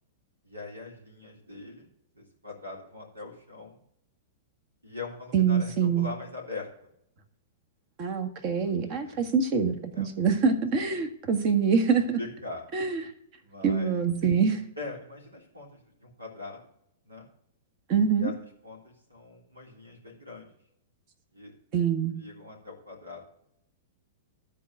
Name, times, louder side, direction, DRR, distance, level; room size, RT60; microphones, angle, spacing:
voice 1, 0.4-1.9 2.1-3.8 4.8-6.7 8.5-9.2 9.9-10.1 10.9-11.0 11.9-12.6 13.4-14.0 14.8-16.6 17.1-17.3 18.1-18.3 18.6-20.5 21.3-21.5 22.1-23.2, left 3 dB, 85° right, 0 dB, 3.3 m, -42 dB
voice 2, 5.3-6.1 8.0-12.2 12.7-13.1 13.6-14.6 17.9-18.3 21.7-22.1, right 6 dB, 40° right, 8 dB, 1.5 m, -25 dB
13.0 x 4.6 x 6.3 m, 0.73 s
figure-of-eight pair, 105°, 0 cm